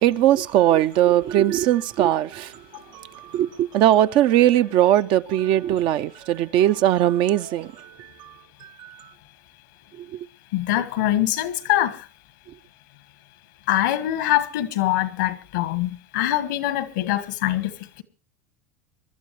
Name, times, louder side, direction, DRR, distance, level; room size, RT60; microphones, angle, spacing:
voice 1, 0.0-2.7 2.9-8.3 8.6-9.1 10.0-10.3, right 12 dB, 55° right, 0.7 m, -20 dB
voice 2, 10.5-12.0 13.7-18.0, left 14 dB, 75° left, 1.6 m, -23 dB
26.0 x 12.0 x 3.2 m
hypercardioid pair, 95°, 10 cm